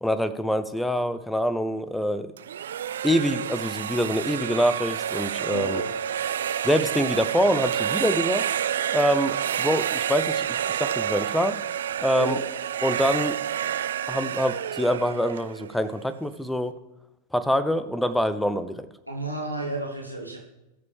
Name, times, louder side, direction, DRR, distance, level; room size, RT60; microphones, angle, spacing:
voice 1, 0.0-2.3 3.0-5.8 6.6-8.4 8.9-11.6 12.0-12.4 12.8-13.4 14.1-16.7 17.3-18.9, equal, 5° left, 14 dB, 0.7 m, -25 dB
sound 1, 2.4-16.2, right 9 dB, 65° right, 0.3 m, -29 dB
voice 2, 5.5-5.9 12.1-12.5 19.1-20.4, right 2 dB, 85° right, 0 dB, 1.2 m, -32 dB
19.5 x 6.8 x 3.4 m, 0.97 s
figure-of-eight pair, 90°, 0 cm